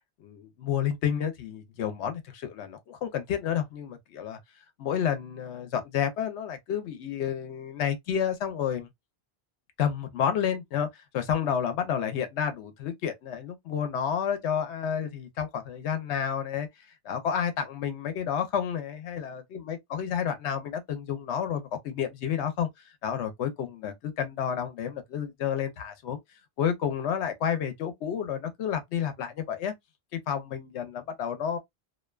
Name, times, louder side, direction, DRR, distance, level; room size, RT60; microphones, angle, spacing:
voice 1, 0.2-4.4 4.8-8.9 9.8-16.7 17.0-22.7 23.0-26.2 26.6-29.7 30.1-31.6, left 8 dB, 85° left, 0.9 m, -30 dB
2.6 x 2.2 x 2.2 m
omnidirectional pair, 1.1 m